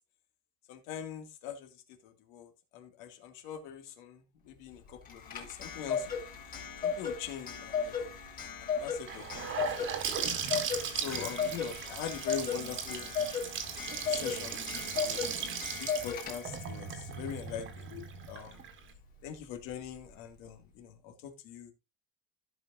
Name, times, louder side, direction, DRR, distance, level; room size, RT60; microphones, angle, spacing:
voice 1, 0.7-6.1 6.8-8.2 8.6-10.2 10.9-13.1 14.1-15.3 15.8-18.7 19.2-21.7, left 9 dB, 70° left, 6 dB, 2.3 m, -43 dB
Clock, 5.1-16.7, left 6 dB, 25° left, 3.2 m, -36 dB
Gurgling / Sink (filling or washing) / Bathtub (filling or washing), 9.1-18.9, right 7 dB, 35° right, 1.6 m, -38 dB
16.0 x 5.7 x 2.6 m, 0.23 s
cardioid pair, 170°, 33 cm